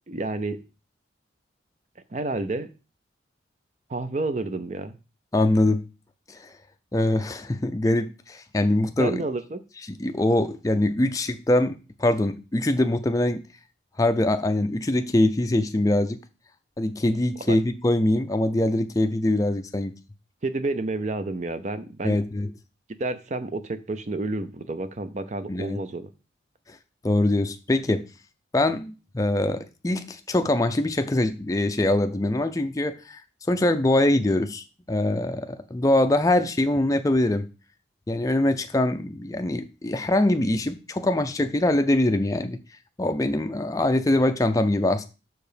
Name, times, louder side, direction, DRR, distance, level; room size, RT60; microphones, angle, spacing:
voice 1, 0.1-0.6 2.1-2.7 3.9-5.0 9.0-9.6 17.5-17.6 20.4-22.2 23.0-26.1, right 2 dB, 40° right, 0.5 m, -30 dB
voice 2, 5.3-5.8 6.3-6.5 6.9-9.2 9.9-13.4 14.0-16.2 16.8-19.9 22.0-22.5 25.5-25.8 26.7-26.8 27.0-28.0 28.5-33.2 33.5-37.5 38.1-42.6 43.0-45.0, left 1 dB, 20° left, 0.4 m, -23 dB
6.4 x 4.8 x 5.0 m
head